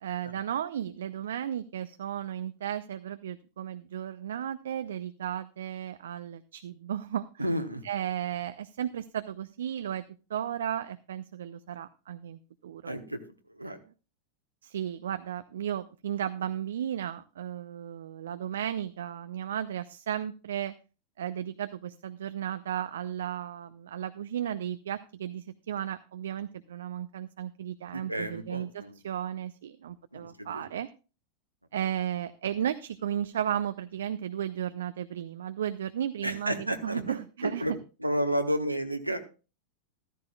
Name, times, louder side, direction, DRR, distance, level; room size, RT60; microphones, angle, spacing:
voice 1, 0.0-7.4 7.8-10.0 10.3-12.9 14.6-20.7 21.2-30.9 31.7-37.8, right 10 dB, 60° right, 12 dB, 0.4 m, -34 dB
voice 2, 7.4-7.8 12.8-13.2 13.5-13.8 27.9-28.9 30.1-30.6 36.2-37.8 38.0-39.2, equal, 85° right, 6 dB, 1.0 m, -31 dB
14.0 x 13.0 x 2.3 m, 0.31 s
figure-of-eight pair, 90°, 0 cm